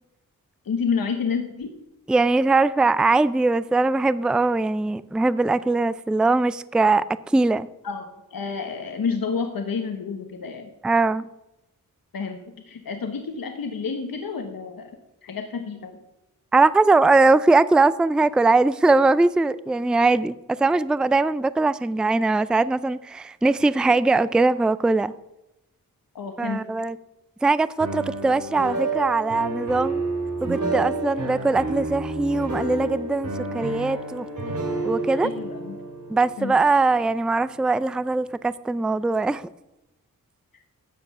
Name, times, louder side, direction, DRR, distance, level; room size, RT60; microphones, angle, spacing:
voice 1, 0.6-1.7 7.8-10.7 12.1-15.9 26.1-26.7 35.2-35.8 36.4-36.5, left 5 dB, 75° left, 6 dB, 1.3 m, -29 dB
voice 2, 2.1-7.7 10.8-11.3 16.5-25.1 26.4-27.0 27.4-30.0 30.4-34.3 34.8-35.3 36.1-39.5, right 3 dB, ahead, 16 dB, 0.4 m, -21 dB
sound 1, 27.8-37.7, right 3 dB, 55° right, 5.2 m, -30 dB
13.5 x 7.8 x 6.0 m, 0.93 s
wide cardioid pair, 70°, 35 cm